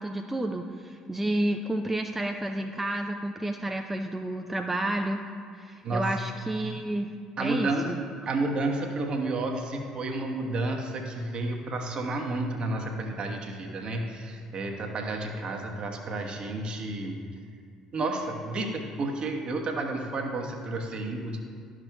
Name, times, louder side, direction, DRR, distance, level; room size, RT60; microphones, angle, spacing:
voice 1, 0.0-5.2 5.6-7.1 7.4-8.0, right 1 dB, 10° right, 3 dB, 0.5 m, -30 dB
voice 2, 7.4-7.9 8.2-17.2 17.9-21.4, right 2 dB, 40° right, 2 dB, 1.1 m, -31 dB
11.5 x 6.2 x 2.3 m, 2.1 s
figure-of-eight pair, 55°, 2 cm